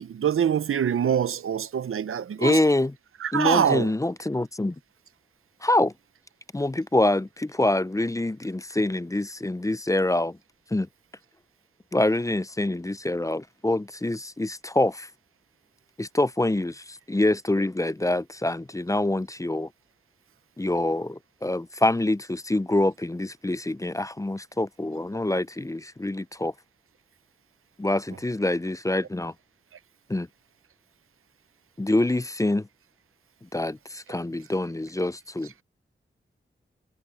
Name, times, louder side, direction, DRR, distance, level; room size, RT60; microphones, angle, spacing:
voice 1, 0.0-2.6 3.2-3.9, right 8 dB, 85° right, 0.7 m, -24 dB
voice 2, 2.4-2.9 3.3-4.7 5.6-5.9 6.5-10.3 10.7-10.9 11.9-15.1 16.0-19.7 20.6-26.5 27.8-29.3 30.1-30.3 31.8-32.6 33.5-35.5, left 1 dB, 15° left, 0.5 m, -25 dB
cardioid pair, 40°, 21 cm